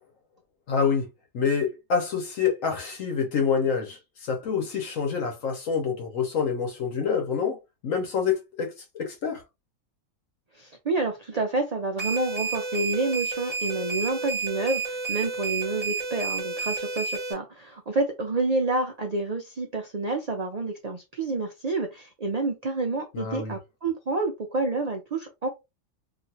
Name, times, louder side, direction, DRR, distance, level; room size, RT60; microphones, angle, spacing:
voice 1, 0.7-1.1 1.3-7.6 7.8-9.4 23.1-23.6, left 6 dB, 70° left, 1.3 m, -27 dB
voice 2, 10.5-25.5, right 3 dB, 65° right, 0.4 m, -29 dB
sound 1, 12.0-17.3, right 4 dB, 30° right, 0.8 m, -31 dB
2.8 x 2.5 x 2.7 m
omnidirectional pair, 1.4 m